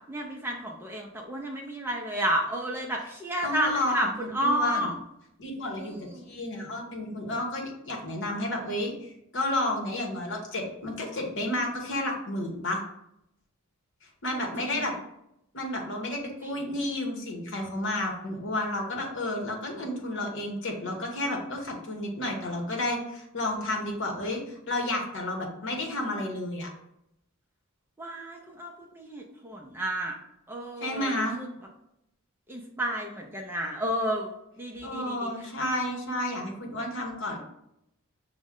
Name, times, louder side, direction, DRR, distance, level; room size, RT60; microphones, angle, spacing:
voice 1, 0.1-4.9 5.8-6.3 14.3-14.8 16.4-16.5 28.0-30.1 30.5-31.5 32.5-35.3, equal, 10° right, 0 dB, 0.4 m, -31 dB
voice 2, 3.4-4.9 5.4-5.9 6.3-12.8 14.2-14.9 15.5-26.7 30.8-31.4 34.8-37.4, left 1 dB, 55° left, 1 dB, 1.0 m, -31 dB
5.9 x 2.1 x 3.6 m, 0.81 s
head